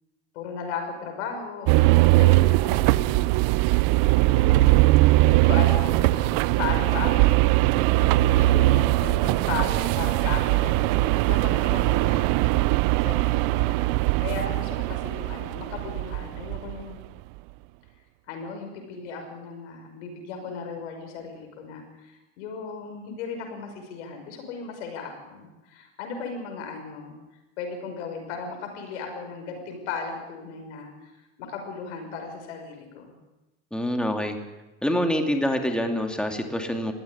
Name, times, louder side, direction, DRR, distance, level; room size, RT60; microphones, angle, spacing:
voice 1, 0.3-3.2 4.2-4.8 5.2-7.4 8.0-13.8 14.2-17.0 18.3-27.1 27.6-33.2, left 5 dB, 90° left, 5 dB, 5.7 m, -36 dB
sound 1, 1.7-16.8, right 19 dB, 70° right, 0.7 m, -21 dB
voice 2, 33.7-34.4 34.8-36.9, equal, 5° left, 4 dB, 2.7 m, -26 dB
20.0 x 15.5 x 9.9 m, 1.0 s
supercardioid pair, 105°, 34 cm